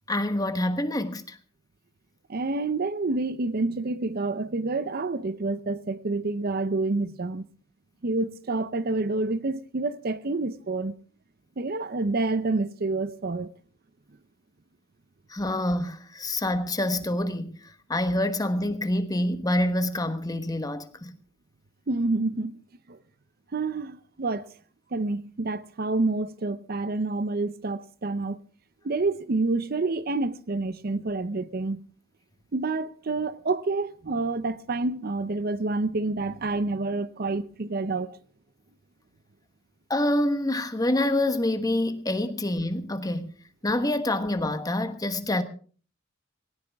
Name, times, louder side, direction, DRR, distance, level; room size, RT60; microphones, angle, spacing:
voice 1, 0.1-1.4 15.3-17.5 17.9-21.1 39.9-43.3 43.6-45.4, left 1 dB, 20° left, 1.2 m, -26 dB
voice 2, 2.3-7.5 8.0-10.9 11.6-13.5 21.9-22.5 22.9-23.0 23.5-24.5 24.9-28.4 28.8-31.8 32.5-38.2, right 3 dB, 50° right, 0.7 m, -28 dB
18.5 x 17.5 x 3.5 m
head